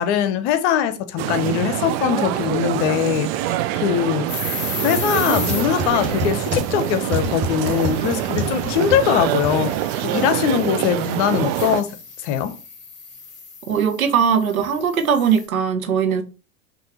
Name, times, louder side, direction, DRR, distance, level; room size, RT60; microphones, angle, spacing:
voice 1, 0.0-3.3 3.8-4.3 4.8-9.7 10.0-12.6, left 9 dB, 55° left, 0.8 m, -21 dB
sound 1, 1.2-11.8, right 13 dB, 50° right, 0.5 m, -25 dB
sound 2, 4.3-15.5, left 4 dB, 25° left, 1.9 m, -36 dB
sound 3, 5.0-10.1, equal, 25° right, 2.0 m, -29 dB
voice 2, 13.7-16.2, right 7 dB, 85° right, 0.9 m, -20 dB
6.0 x 2.7 x 2.9 m
hypercardioid pair, 85°, 41 cm